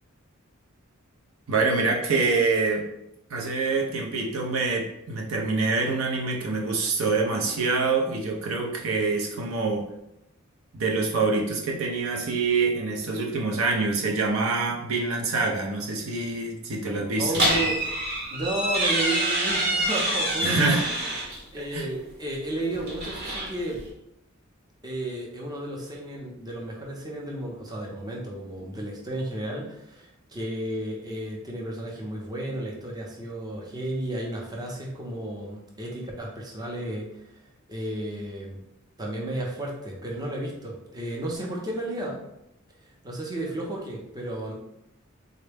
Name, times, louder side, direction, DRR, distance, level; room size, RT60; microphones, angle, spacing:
voice 1, 1.5-2.9 3.3-9.9 10.7-17.7 20.4-20.8 21.6-21.9, right 3 dB, 75° right, 0 dB, 0.6 m, -26 dB
voice 2, 17.2-17.8 18.3-20.8 21.5-23.8 24.8-37.4 37.7-38.6 39.0-42.2 42.8-44.5, right 1 dB, 20° right, -2 dB, 0.6 m, -33 dB
sound 1, 17.3-21.4 22.7-23.9, right 1 dB, 50° right, 0.9 m, -26 dB
3.7 x 2.1 x 3.4 m, 0.83 s
head